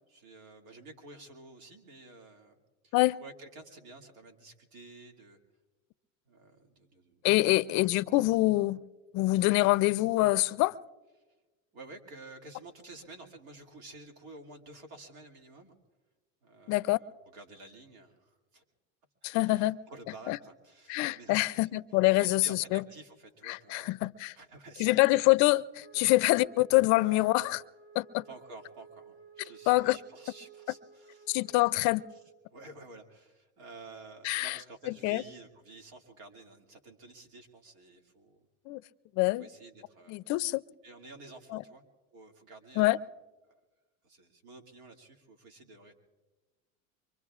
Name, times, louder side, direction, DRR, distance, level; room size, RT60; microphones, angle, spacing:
voice 1, 0.1-2.6 2.8-5.4 6.3-7.2 7.5-8.1 11.7-15.7 16.4-18.6 19.3-24.0 24.3-25.0 26.0-26.1 28.3-31.6 32.1-32.2 32.5-38.4 39.4-40.1 40.8-41.8 42.1-43.1 43.5-43.6 44.0-45.9, right 2 dB, 80° right, 2.5 m, -51 dB
voice 2, 7.2-8.8 9.1-10.7 16.7-17.0 19.2-19.8 20.3-20.4 20.9-22.8 23.5-24.3 24.8-27.6 28.0-28.2 29.7-30.0 31.3-32.0 34.2-34.6 34.9-35.2 38.7-38.8 39.2-39.5 40.1-40.6 41.5-41.6 42.8-43.0, left 20 dB, 45° left, 0.5 m, -25 dB
Wind instrument woodwind instrument, 25.8-32.2, right 6 dB, 35° right, 5.4 m, -55 dB
25.0 x 23.5 x 2.4 m
supercardioid pair, 115°, 39 cm